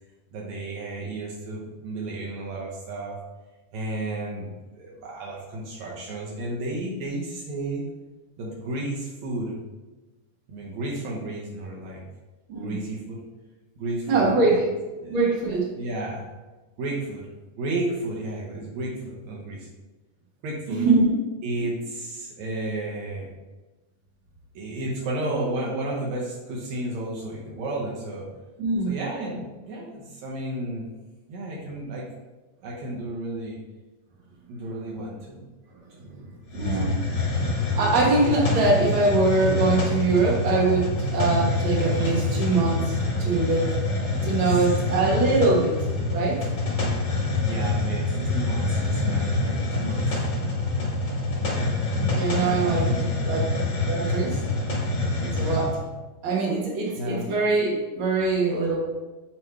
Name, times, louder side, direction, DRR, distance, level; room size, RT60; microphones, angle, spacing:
voice 1, 0.3-3.2 3.7-4.5 4.7-7.8 8.4-9.6 10.5-12.0 12.6-13.2 13.8-14.7 15.0-15.4 15.8-16.2 16.8-17.3 17.6-19.7 20.4-20.9 21.4-23.3 24.6-28.3 28.9-30.9 31.3-32.1 32.6-33.6 34.5-35.5 36.0-36.8 44.5-44.8 47.4-50.2 51.4-51.8 52.3-53.1 57.0-57.3, right 2 dB, 75° right, -3 dB, 2.1 m, -32 dB
voice 2, 14.1-14.7 15.1-15.7 20.7-21.2 21.6-21.7 28.6-28.9 36.5-36.9 37.7-43.7 44.0-45.8 46.1-46.4 52.2-52.9 53.2-53.4 53.9-54.4 55.2-55.8 56.2-58.8, right 3 dB, 50° right, -3 dB, 1.9 m, -23 dB
Hiss, 36.5-55.8, left 2 dB, 45° left, 2.0 m, -26 dB
7.5 x 3.2 x 4.4 m, 1.2 s
omnidirectional pair, 3.4 m